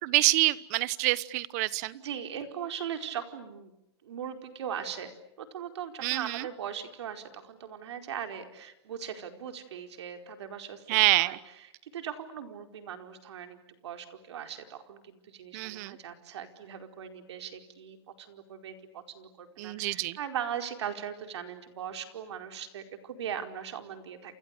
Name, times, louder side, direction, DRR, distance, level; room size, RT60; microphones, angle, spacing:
voice 1, 0.0-2.0 6.0-6.5 10.9-11.4 15.5-16.0 19.6-20.2, right 20 dB, 40° right, 18 dB, 1.1 m, -26 dB
voice 2, 1.9-3.7 4.0-5.1 5.4-24.4, right 8 dB, 85° right, 6 dB, 4.6 m, -39 dB
29.5 x 29.0 x 6.8 m, 0.85 s
supercardioid pair, 170°, 14 cm